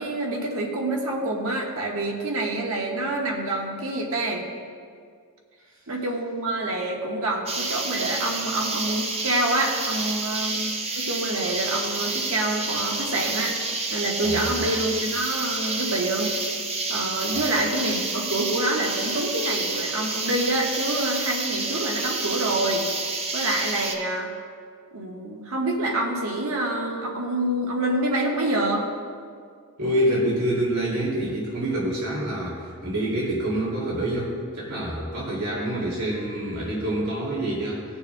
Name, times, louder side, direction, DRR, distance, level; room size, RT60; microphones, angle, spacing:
voice 1, 0.0-4.4 5.9-13.6 13.9-16.3 16.9-22.9 23.3-24.3 24.9-28.9, right 1 dB, 70° right, 0 dB, 1.3 m, -27 dB
sound 1, 7.5-23.9, right 3 dB, 30° right, 0.7 m, -29 dB
voice 2, 29.8-37.8, right 1 dB, 85° right, -5 dB, 2.4 m, -26 dB
20.0 x 6.9 x 2.2 m, 2.1 s
head